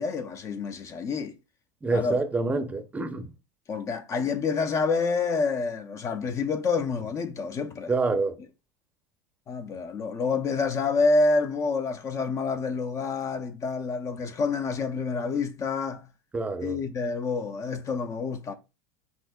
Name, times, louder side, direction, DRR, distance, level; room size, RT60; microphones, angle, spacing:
voice 1, 0.0-1.4 1.9-2.2 3.7-7.9 9.5-16.1 16.6-18.6, left 4 dB, 30° left, 0.5 m, -28 dB
voice 2, 1.8-3.3 7.9-8.4 16.3-16.8, right 3 dB, 15° right, 0.6 m, -27 dB
5.7 x 2.8 x 2.3 m
hypercardioid pair, 100°, 10 cm